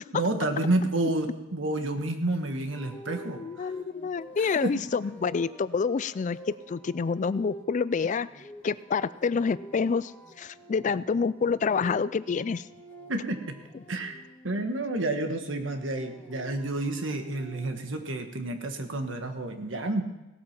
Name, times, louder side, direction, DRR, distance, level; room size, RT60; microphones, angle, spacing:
voice 1, 0.1-3.4 4.6-4.7 13.1-13.5 13.9-14.2 14.4-20.0, right 2 dB, 75° right, 6 dB, 1.5 m, -29 dB
sound 1, 2.7-14.6 15.8-18.0, right 1 dB, 10° left, 1.7 m, -49 dB
voice 2, 3.4-6.4 6.7-8.3 8.6-10.1 10.4-12.7, left 5 dB, 40° left, 17 dB, 0.3 m, -27 dB
17.5 x 8.6 x 5.8 m, 1.0 s
head